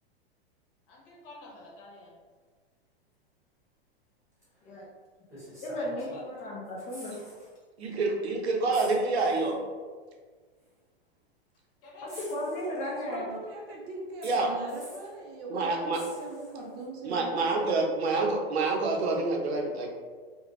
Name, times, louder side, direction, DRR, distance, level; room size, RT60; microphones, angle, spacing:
voice 1, 0.9-2.2 5.8-6.5 11.8-12.3, left 2 dB, 60° left, -3 dB, 1.0 m, -48 dB
sound 1, 4.4-4.6 5.3-6.4 6.7-7.5 7.8-8.0 8.7-9.6 10.6-10.7 12.1-13.1 14.2-15.2 15.9-16.8 18.6-18.7, equal, 10° right, 1.4 m, -49 dB
voice 2, 5.6-7.2 12.0-13.3, left 1 dB, 25° left, -3 dB, 0.6 m, -35 dB
voice 3, 7.8-9.6 14.2-14.5 15.5-16.0 17.0-19.9, right 3 dB, 80° right, 0 dB, 0.7 m, -27 dB
voice 4, 12.9-17.9, right 1 dB, 30° right, -2 dB, 0.6 m, -41 dB
2.4 x 2.2 x 3.0 m, 1.5 s
hypercardioid pair, 115°, 32 cm